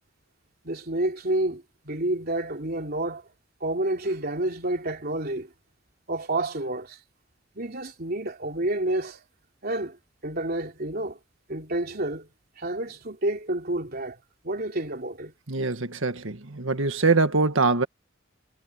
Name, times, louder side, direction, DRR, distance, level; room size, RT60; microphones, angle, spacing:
voice 1, 0.6-3.2 3.6-5.5 6.1-7.0 7.6-9.2 9.6-10.0 10.2-11.2 11.5-12.3 12.6-14.2 14.4-15.3, right 1 dB, 50° right, 3.5 m, -29 dB
voice 2, 15.5-17.9, right 3 dB, 75° right, 1.7 m, -23 dB
head